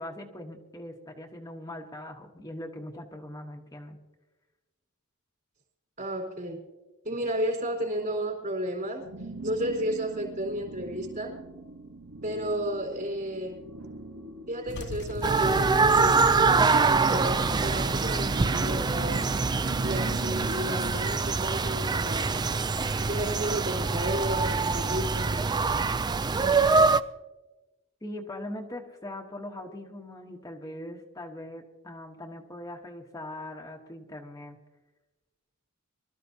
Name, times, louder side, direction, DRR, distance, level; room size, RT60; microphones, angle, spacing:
voice 1, 0.0-4.0 28.0-34.6, left 1 dB, 15° left, 1 dB, 1.1 m, -41 dB
voice 2, 6.0-6.6 7.0-9.1 9.4-11.4 12.2-13.7 14.5-19.2 19.8-22.4 23.0-25.7, right 1 dB, 45° right, 1 dB, 4.4 m, -32 dB
sound 1, 9.0-21.0, right 2 dB, 75° right, 1.2 m, -42 dB
sound 2, 14.7-22.3, left 3 dB, 55° left, 0.6 m, -42 dB
sound 3, 15.2-27.0, right 4 dB, 20° right, 0.3 m, -24 dB
24.5 x 13.5 x 2.8 m, 1.1 s
head